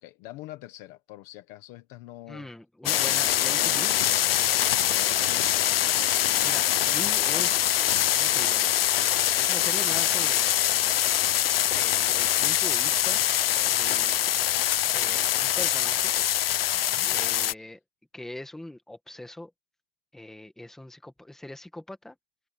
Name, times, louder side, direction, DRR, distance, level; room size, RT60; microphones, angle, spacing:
voice 1, 0.0-2.5 4.9-5.7 16.7-17.1 17.6-17.7, left 16 dB, 20° left, 1.1 m, -45 dB
voice 2, 2.3-4.6 6.4-7.7 8.1-8.7 9.4-10.5 11.8-13.2 13.7-14.2 14.8-16.1 17.0-17.8 18.1-19.5 20.1-22.2, left 1 dB, ahead, 1.4 m, -41 dB
sound 1, 2.9-17.5, left 12 dB, 45° left, 0.5 m, -24 dB
supercardioid pair, 175°, 44 cm